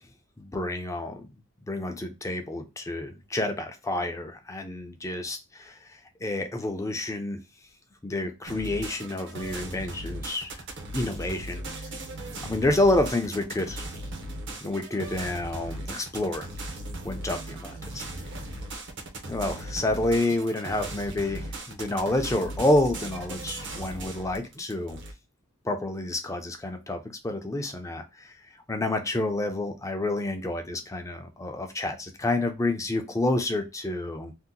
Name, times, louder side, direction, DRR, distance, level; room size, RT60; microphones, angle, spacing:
voice 1, 0.4-1.3 1.7-7.4 8.0-10.6 10.9-11.9 12.4-13.8 14.6-16.5 17.0-18.0 19.3-25.0 25.6-28.3 28.7-34.3, left 2 dB, 15° left, 5 dB, 0.5 m, -29 dB
sound 1, 8.5-25.1, right 1 dB, 55° right, 0.7 m, -37 dB
2.7 x 2.1 x 3.7 m, 0.25 s
head